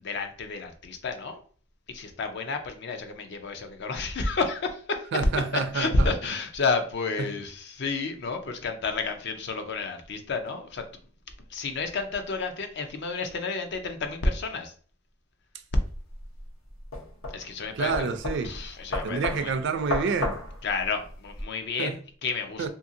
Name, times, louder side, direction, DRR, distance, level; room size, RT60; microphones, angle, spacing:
voice 1, 0.0-1.4 1.9-5.1 5.5-10.9 11.5-14.7 17.3-18.1 18.4-19.5 20.6-22.7, left 3 dB, 60° left, 0.5 m, -30 dB
voice 2, 5.1-6.1 7.2-7.3 17.7-18.5 18.9-20.4 21.8-22.0 22.6-22.7, right 5 dB, 60° right, 0.4 m, -28 dB
sound 1, 15.8-21.4, left 2 dB, 85° left, 0.9 m, -34 dB
2.8 x 2.6 x 2.6 m
head